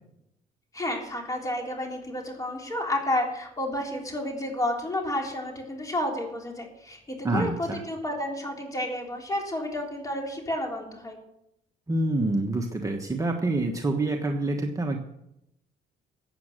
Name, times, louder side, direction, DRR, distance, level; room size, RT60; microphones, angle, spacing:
voice 1, 0.7-11.2, left 1 dB, 20° left, 1 dB, 3.6 m, -31 dB
voice 2, 7.2-7.8 11.9-15.0, right 2 dB, 20° right, 2 dB, 1.3 m, -27 dB
15.0 x 8.7 x 6.6 m, 0.83 s
cardioid pair, 110°, 17 cm